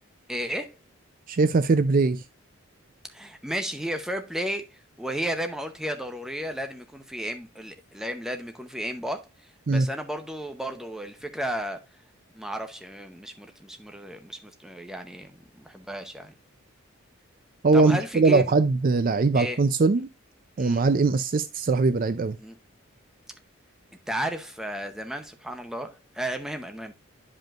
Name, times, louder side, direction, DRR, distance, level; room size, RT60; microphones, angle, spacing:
voice 1, 0.3-0.8 3.1-11.8 12.3-16.3 17.7-18.5 19.3-19.6 20.6-20.8 22.4-22.6 24.1-27.0, equal, ahead, 0.7 m, -33 dB
voice 2, 1.3-2.2 9.7-9.9 17.6-20.1 20.6-22.4, right 3 dB, 40° right, 0.4 m, -21 dB
11.0 x 5.1 x 2.4 m
head